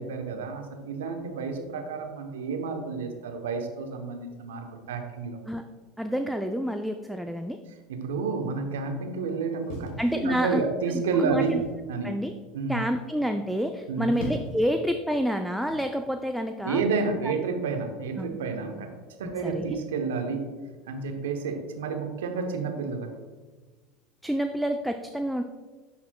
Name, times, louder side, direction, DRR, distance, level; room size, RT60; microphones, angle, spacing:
voice 1, 0.0-5.4 7.9-11.6 11.9-12.1 12.5-12.8 13.9-14.2 16.6-18.9 19.2-20.5 20.9-23.1, right 4 dB, 80° right, 5 dB, 0.8 m, -30 dB
voice 2, 6.0-7.6 10.0-10.6 11.2-11.6 12.0-12.3 12.7-16.8 17.2-17.3 18.2-18.4 19.4-19.6 24.2-25.4, equal, ahead, 6 dB, 0.3 m, -28 dB
sound 1, 9.7-10.7 11.4-11.8 13.8-14.7 15.7-15.9, equal, 65° left, 1.5 m, -39 dB
10.0 x 4.3 x 2.2 m, 1.4 s
hypercardioid pair, 85°, 0 cm